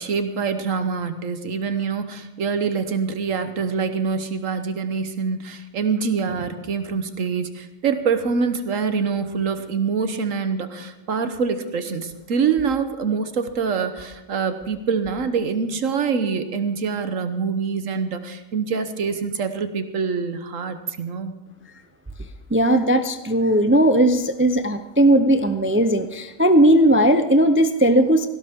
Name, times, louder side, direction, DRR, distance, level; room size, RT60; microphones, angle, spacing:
voice 1, 0.0-21.3, right 5 dB, 70° right, 9 dB, 1.3 m, -25 dB
voice 2, 22.5-28.3, right 1 dB, 15° right, 9 dB, 0.4 m, -17 dB
18.0 x 16.5 x 3.6 m, 1.0 s
omnidirectional pair, 1.4 m